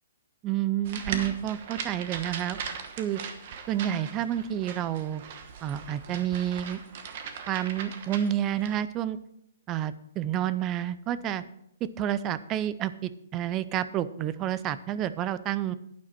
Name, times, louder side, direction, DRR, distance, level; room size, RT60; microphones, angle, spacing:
voice 1, 0.4-2.6 3.0-3.2 3.7-5.2 5.6-6.8 7.5-9.2 9.7-11.4 12.0-15.8, right 11 dB, 20° right, 15 dB, 0.4 m, -29 dB
sound 1, 0.8-8.7, right 6 dB, 40° right, 1.1 m, -39 dB
11.5 x 9.1 x 4.2 m, 0.76 s
hypercardioid pair, 170°, 0 cm